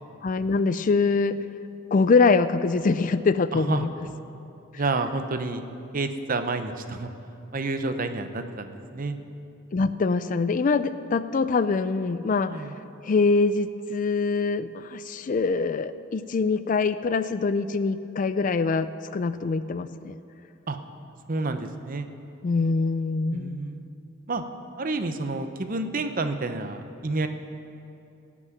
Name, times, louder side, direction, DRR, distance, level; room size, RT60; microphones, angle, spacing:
voice 1, 0.2-1.4 1.9-3.9 9.7-12.6 13.0-20.2 22.4-23.6, left 4 dB, 40° left, 13 dB, 0.4 m, -24 dB
voice 2, 3.5-3.8 4.7-5.6 5.9-7.1 7.5-9.2 12.5-12.7 20.7-20.8 21.3-22.1 23.3-23.9 24.3-24.4 24.8-27.3, right 3 dB, 40° right, 8 dB, 0.7 m, -29 dB
17.5 x 6.1 x 9.3 m, 2.8 s
head